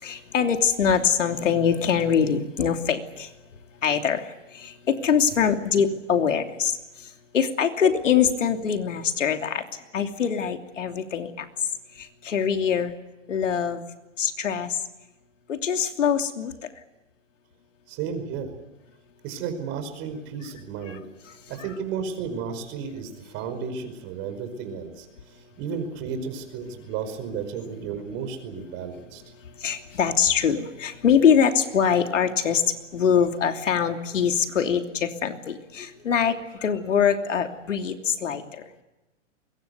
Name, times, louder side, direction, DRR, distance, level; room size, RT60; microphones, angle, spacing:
voice 1, 0.0-3.3 3.8-11.5 11.9-12.9 13.3-13.8 14.2-14.8 15.5-16.5 20.8-21.0 21.2-21.3 29.6-38.8, left 7 dB, 85° left, 5 dB, 3.0 m, -24 dB
voice 2, 17.9-18.6 19.2-21.0 21.5-25.1 25.6-29.2, right 6 dB, 35° right, 9 dB, 5.2 m, -33 dB
24.0 x 22.5 x 8.2 m, 1.0 s
hypercardioid pair, 140°, 36 cm